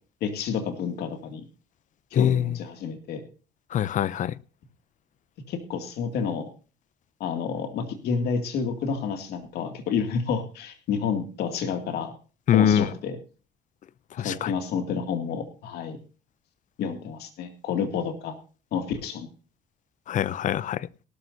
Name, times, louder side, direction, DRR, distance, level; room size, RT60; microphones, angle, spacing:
voice 1, 0.2-1.4 2.1-3.2 5.5-6.5 7.2-12.1 12.5-13.2 14.2-16.0 16.8-18.3 18.7-19.3, left 6 dB, 75° left, 2.4 m, -29 dB
voice 2, 2.1-2.6 3.7-4.3 12.5-12.8 14.2-14.5 20.1-20.9, left 10 dB, 50° left, 0.5 m, -23 dB
18.0 x 12.5 x 2.7 m
cardioid pair, 110°, 17 cm